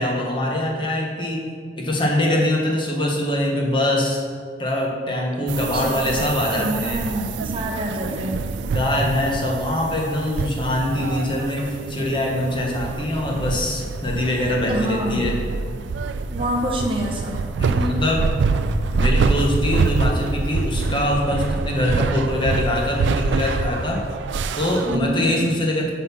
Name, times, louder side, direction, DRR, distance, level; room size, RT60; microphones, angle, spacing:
voice 1, 0.0-1.5 1.7-4.2 4.6-7.0 8.7-15.4 17.6-18.3 18.9-24.0 24.5-25.9, left 1 dB, 25° left, 0 dB, 1.0 m, -23 dB
sound 1, 5.5-25.0, right 4 dB, 75° right, 0.3 m, -26 dB
voice 2, 5.7-6.2 6.5-8.4 14.7-15.3 16.3-17.4 24.8-25.3, right 1 dB, 30° right, 1 dB, 0.7 m, -27 dB
8.7 x 3.7 x 5.8 m, 2.1 s
head